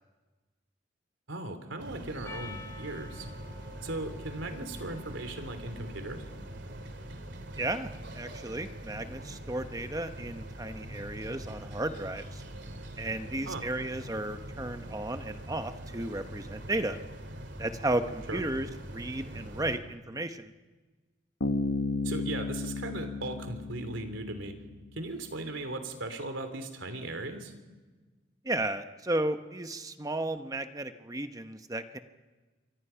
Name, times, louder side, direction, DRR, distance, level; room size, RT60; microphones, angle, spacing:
voice 1, 1.3-3.3 3.8-6.2 13.5-13.6 18.3-18.5 22.0-24.5 24.9-27.5, right 2 dB, 75° right, 7 dB, 3.2 m, -38 dB
sound 1, 1.8-19.8, right 1 dB, 60° right, 2.8 m, -43 dB
Percussion, 2.2-6.8, left 3 dB, 15° left, 1.0 m, -50 dB
voice 2, 7.6-12.4 13.0-17.0 17.6-20.5 28.4-32.0, right 1 dB, 20° right, 8 dB, 0.9 m, -34 dB
Bass guitar, 21.4-24.9, left 2 dB, 80° left, 1.4 m, -33 dB
28.0 x 24.5 x 5.8 m, 1.3 s
head